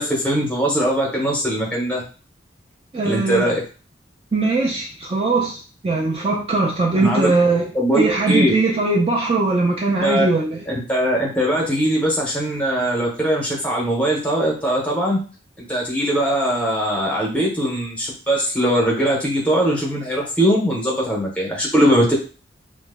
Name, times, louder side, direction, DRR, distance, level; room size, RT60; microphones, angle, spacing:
voice 1, 0.0-2.0 3.0-3.6 7.0-7.3 7.7-8.5 10.0-10.3 10.9-15.2 15.7-22.2, equal, 5° left, -3 dB, 0.8 m, -20 dB
voice 2, 2.9-3.4 4.3-7.7 7.9-10.7, right 3 dB, 30° right, -2 dB, 0.4 m, -20 dB
3.0 x 2.1 x 3.4 m, 0.37 s
head